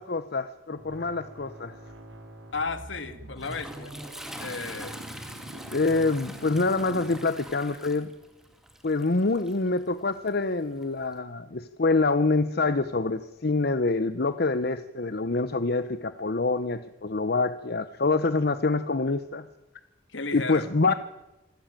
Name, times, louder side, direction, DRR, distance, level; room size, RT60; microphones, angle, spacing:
voice 1, 0.0-1.7 5.7-8.1 8.8-19.5 20.3-20.9, left 3 dB, 55° left, 12 dB, 0.8 m, -26 dB
sound 1, 0.7-7.7, right 1 dB, 70° right, 3.7 m, -44 dB
voice 2, 2.5-3.9 4.4-5.0 20.1-20.7, left 4 dB, 70° left, 10 dB, 2.2 m, -34 dB
Toilet flush, 3.1-11.2, equal, ahead, 2.3 m, -45 dB
26.0 x 15.5 x 9.0 m, 1.0 s
head